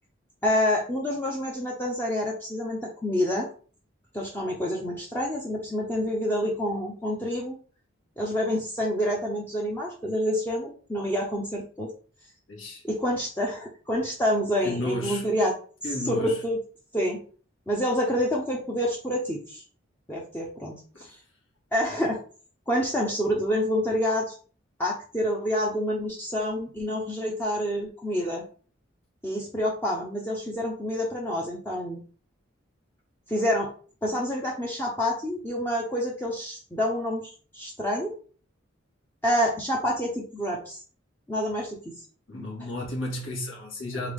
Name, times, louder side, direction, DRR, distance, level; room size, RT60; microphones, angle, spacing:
voice 1, 0.4-3.5 4.1-7.5 8.2-11.9 12.8-15.5 16.0-16.6 16.9-17.2 17.7-19.6 20.1-21.2 21.7-22.2 22.7-24.4 24.8-28.4 29.2-32.0 33.3-33.7 34.0-38.1 39.2-40.8 41.3-41.8 42.6-42.7, equal, 10° left, 0.6 m, -27 dB
voice 2, 12.5-12.8 14.6-15.3 15.8-16.4 20.9-21.1 42.3-44.1, left 1 dB, 75° left, 1.8 m, -33 dB
3.8 x 3.5 x 3.4 m
head